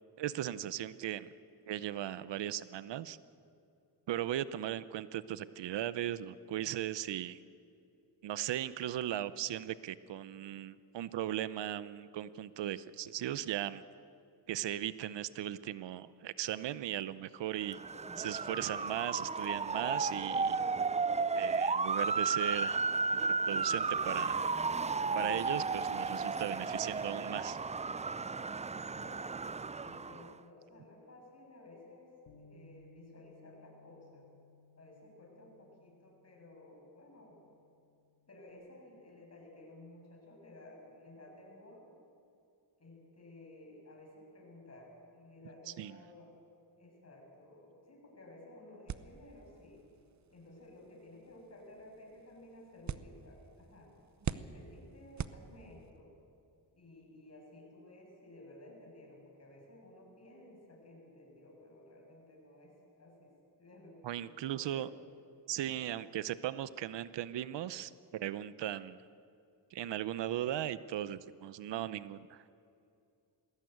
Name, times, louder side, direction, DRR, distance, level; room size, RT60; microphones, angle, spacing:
voice 1, 0.2-1.3 1.7-3.2 4.1-7.4 8.2-13.8 14.5-17.8 18.2-20.6 21.3-22.8 23.2-24.5 25.1-27.6 45.8-46.0 64.0-64.9 65.5-69.0 69.7-72.5, right 12 dB, 80° right, 16 dB, 0.8 m, -37 dB
Motor vehicle (road) / Siren, 17.6-30.3, right 4 dB, 15° right, 0.4 m, -34 dB
voice 2, 28.9-29.3 29.8-32.1 32.4-34.3 34.8-37.4 38.3-41.9 42.8-46.3 46.8-49.8 50.3-53.9 54.3-56.1 56.7-63.3 63.6-64.9 65.6-65.9, left 1 dB, 35° left, -1 dB, 7.5 m, -55 dB
Bass guitar, 32.3-38.5, left 3 dB, 65° left, 2.1 m, -63 dB
sound 1, 48.9-56.0, right 8 dB, 40° right, 0.8 m, -45 dB
20.5 x 16.5 x 9.5 m, 2.5 s
cardioid pair, 90°, 42 cm